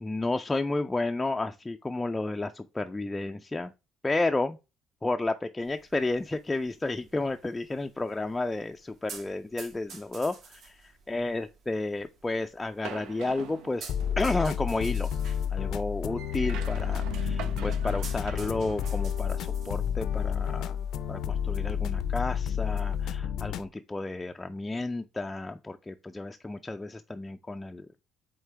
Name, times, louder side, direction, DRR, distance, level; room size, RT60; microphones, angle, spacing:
voice 1, 0.0-3.7 4.0-4.6 5.0-10.8 11.1-13.9 14.2-15.1 15.5-20.8 21.1-28.0, left 2 dB, 15° left, 0.4 m, -32 dB
sound 1, 5.6-23.1, right 5 dB, 60° right, 2.4 m, -52 dB
sound 2, 12.8-14.3 16.2-19.1, right 8 dB, 90° right, 0.8 m, -42 dB
sound 3, 13.9-23.7, left 8 dB, 70° left, 0.5 m, -30 dB
8.1 x 3.7 x 3.3 m
cardioid pair, 130°, 0 cm